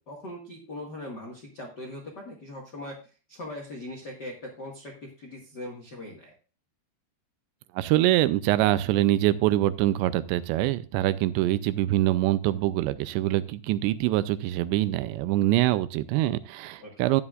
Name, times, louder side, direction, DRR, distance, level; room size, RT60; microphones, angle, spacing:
voice 1, 0.0-3.0 3.3-6.3 16.8-17.1, left 1 dB, 75° left, 0 dB, 0.9 m, -40 dB
voice 2, 7.7-17.2, right 15 dB, 85° right, 14 dB, 2.8 m, -24 dB
12.5 x 9.7 x 2.5 m, 0.35 s
omnidirectional pair, 5.1 m